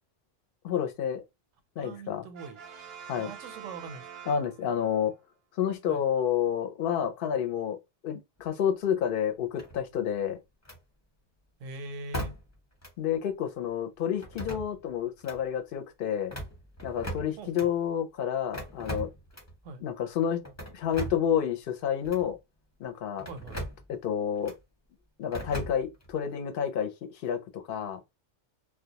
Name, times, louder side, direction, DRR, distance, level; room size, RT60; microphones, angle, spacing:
voice 1, 0.6-1.2 1.8-2.3 3.1-3.3 4.3-5.1 5.6-7.8 8.0-10.4 13.0-16.3 16.8-19.1 19.8-20.4 20.7-22.4 22.8-23.3 23.9-24.5 25.2-28.0, left 8 dB, 60° left, 0.7 m, -29 dB
voice 2, 1.8-2.6 3.1-4.0 5.9-6.0 11.6-12.4 17.4-17.7 19.6-19.8 23.3-23.6, right 3 dB, 90° right, 1.0 m, -42 dB
Brass instrument, 2.3-5.0, right 7 dB, 65° right, 0.7 m, -46 dB
sound 1, 9.6-10.1 10.6-10.8 12.1-12.6 12.8-12.9 14.2-14.9 15.2-15.4 16.1-17.7 18.5-19.6 20.4-21.3 22.0-22.3 23.2-23.8 24.4-24.6 25.3-26.1, right 1 dB, 15° left, 0.7 m, -38 dB
2.3 x 2.1 x 2.8 m
omnidirectional pair, 1.3 m